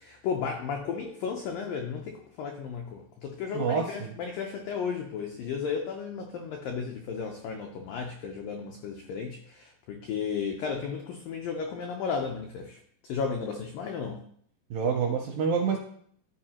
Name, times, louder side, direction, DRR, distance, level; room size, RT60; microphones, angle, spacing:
voice 1, 0.0-14.2, left 6 dB, 85° left, 2 dB, 1.9 m, -34 dB
voice 2, 3.5-4.1 14.7-15.8, right 6 dB, 80° right, 2 dB, 2.0 m, -27 dB
13.0 x 4.8 x 2.9 m, 0.63 s
omnidirectional pair, 4.9 m